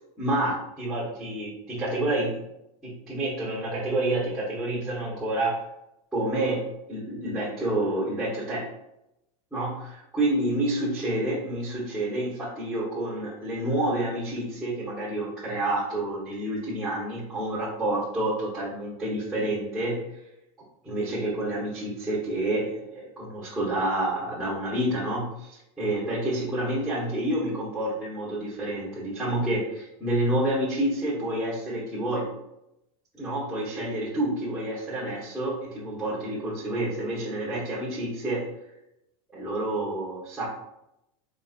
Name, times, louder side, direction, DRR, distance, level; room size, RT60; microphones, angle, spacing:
voice 1, 0.2-2.4 2.8-5.6 6.1-8.6 9.5-20.0 20.8-32.3 33.2-38.5 39.3-40.4, right 1 dB, ahead, -10 dB, 1.1 m, -28 dB
4.1 x 4.1 x 2.5 m, 0.85 s
supercardioid pair, 175°, 18 cm